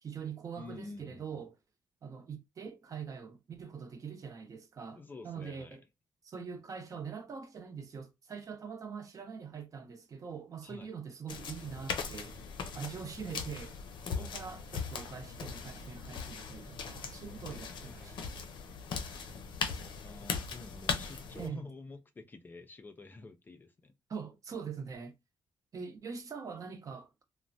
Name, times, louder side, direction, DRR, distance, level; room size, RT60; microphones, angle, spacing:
voice 1, 0.0-1.5 2.0-5.8 6.2-12.4 12.7-13.8 14.0-18.3 21.3-21.7 24.1-25.1 25.7-27.2, right 6 dB, 40° right, 0.7 m, -43 dB
voice 2, 0.6-1.4 5.0-5.8 10.6-10.9 14.1-14.4 17.5-18.5 20.0-23.9, left 3 dB, 25° left, 0.4 m, -49 dB
sound 1, 11.3-21.5, left 6 dB, 70° left, 0.5 m, -39 dB
3.1 x 2.1 x 2.6 m
cardioid pair, 135°, 8 cm